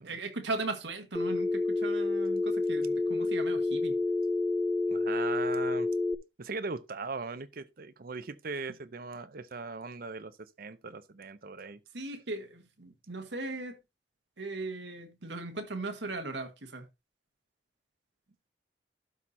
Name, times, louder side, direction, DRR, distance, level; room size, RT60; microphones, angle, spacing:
voice 1, 0.0-4.0 11.9-13.8 14.4-16.8, right 2 dB, 80° right, 1.6 m, -38 dB
Telephone, 1.1-6.1, left 3 dB, 5° left, 0.8 m, -29 dB
voice 2, 4.9-5.9 6.4-11.8, right 4 dB, 55° right, 0.7 m, -39 dB
12.0 x 4.2 x 4.2 m
head